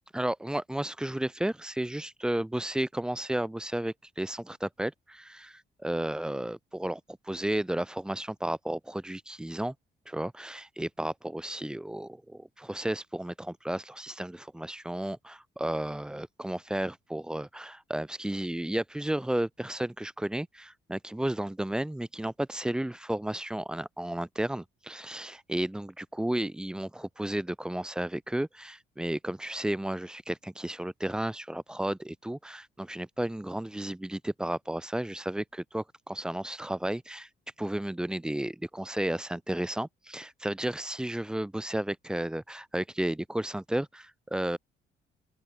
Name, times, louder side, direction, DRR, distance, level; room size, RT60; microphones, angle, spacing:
voice 1, 0.1-9.7 10.1-37.3 37.6-44.6, right 1 dB, 5° right, 0.3 m, -33 dB
open air
cardioid pair, 90°, 20 cm